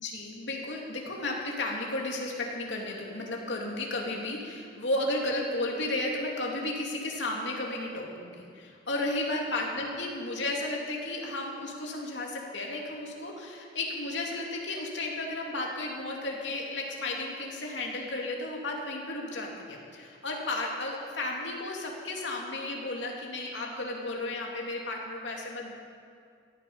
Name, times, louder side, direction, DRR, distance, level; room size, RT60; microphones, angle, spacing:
voice 1, 0.0-25.7, left 2 dB, 75° left, -1 dB, 2.6 m, -33 dB
17.0 x 12.0 x 5.5 m, 2.3 s
head